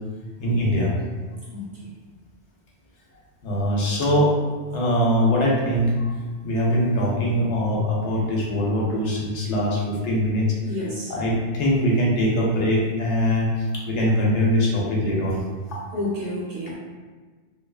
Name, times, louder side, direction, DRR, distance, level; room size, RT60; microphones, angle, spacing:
voice 1, 0.4-0.9 3.4-4.3 4.7-6.1 6.4-10.5 11.1-15.4, equal, 80° left, -3 dB, 0.9 m, -22 dB
voice 2, 1.5-1.9 10.6-11.1 15.9-16.7, left 1 dB, 55° right, -8 dB, 1.2 m, -30 dB
2.7 x 2.2 x 2.3 m, 1.4 s
omnidirectional pair, 1.2 m